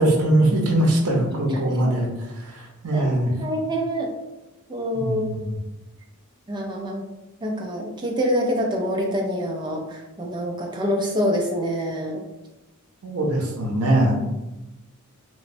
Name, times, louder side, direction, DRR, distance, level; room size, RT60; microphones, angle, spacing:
voice 1, 0.0-3.3 4.9-5.5 13.0-14.2, right 1 dB, 85° right, 0 dB, 0.6 m, -22 dB
voice 2, 1.5-1.8 2.9-4.1 4.7-5.4 6.5-7.0 7.4-12.2, equal, 20° right, 0 dB, 0.4 m, -26 dB
3.0 x 2.1 x 2.5 m, 1.0 s
head